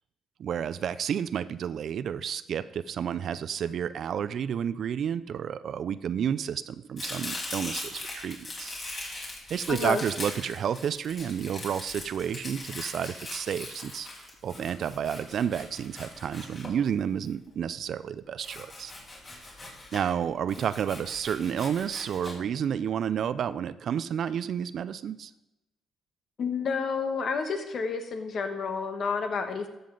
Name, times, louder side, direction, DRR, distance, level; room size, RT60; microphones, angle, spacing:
voice 1, 0.4-14.1 14.4-18.9 19.9-25.3, right 8 dB, 65° right, 15 dB, 0.4 m, -31 dB
Domestic sounds home sounds, 7.0-17.3 18.4-20.1 20.5-22.3, left 2 dB, 40° left, 3.3 m, -40 dB
voice 2, 9.7-10.0 26.4-29.7, left 5 dB, 55° left, 7 dB, 1.2 m, -30 dB
13.0 x 6.9 x 3.9 m, 0.93 s
cardioid pair, 90°, 0 cm